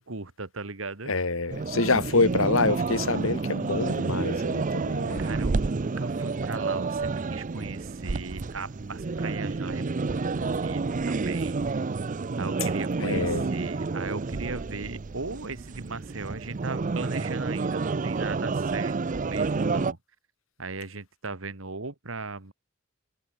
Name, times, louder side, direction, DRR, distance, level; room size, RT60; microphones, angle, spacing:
voice 1, 0.0-1.1 4.9-11.8 12.4-20.0 20.6-22.5, right 3 dB, 75° right, 2.0 m, -38 dB
voice 2, 1.1-5.2 13.0-13.5, left 3 dB, 80° left, 1.8 m, -26 dB
sound 1, 1.5-19.9, right 4 dB, 40° right, 0.5 m, -29 dB
head